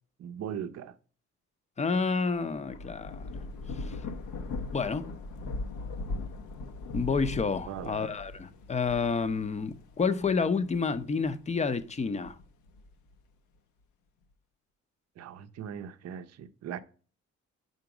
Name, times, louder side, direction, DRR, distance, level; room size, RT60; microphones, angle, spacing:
voice 1, 0.2-1.0 7.7-8.2 15.2-16.8, right 9 dB, 60° right, 0.6 m, -39 dB
voice 2, 1.8-3.4 3.7-4.0 4.7-5.1 6.9-12.4, left 5 dB, 25° left, 0.5 m, -29 dB
Thunder / Rain, 2.4-11.3 11.8-13.1, left 3 dB, 80° left, 0.7 m, -39 dB
5.1 x 4.0 x 4.7 m
cardioid pair, 90°, 30 cm